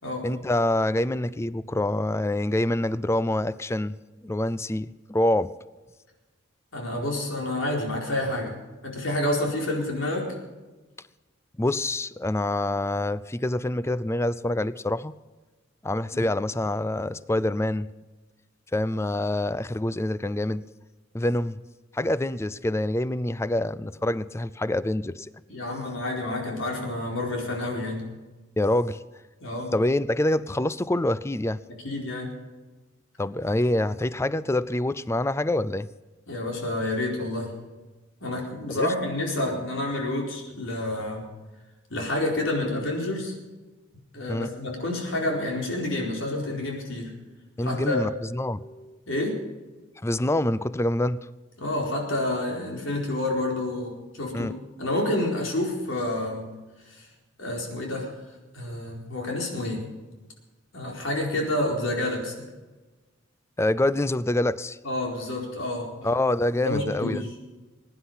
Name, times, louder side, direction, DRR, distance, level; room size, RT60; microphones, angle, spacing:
voice 1, 0.2-4.0 4.2-5.5 11.6-15.1 15.8-17.9 18.7-20.6 21.1-21.6 21.9-25.3 28.6-29.0 29.7-31.6 33.2-35.9 38.7-38.9 44.3-44.5 47.6-49.5 50.0-51.2 54.3-54.5 58.7-58.8 63.6-64.8 66.0-67.3, left 1 dB, 15° left, 17 dB, 0.4 m, -26 dB
voice 2, 6.7-8.5 8.8-10.3 16.1-16.2 25.5-28.1 29.4-29.7 31.8-32.3 36.3-37.5 38.2-41.3 41.9-43.3 44.1-47.1 47.6-48.0 49.1-49.4 51.6-54.5 54.8-56.4 56.9-57.1 57.4-58.1 58.5-59.8 60.7-62.3 64.8-65.9 66.6-67.3, left 1 dB, 85° left, -1 dB, 4.4 m, -29 dB
21.5 x 10.0 x 5.6 m, 1.2 s
head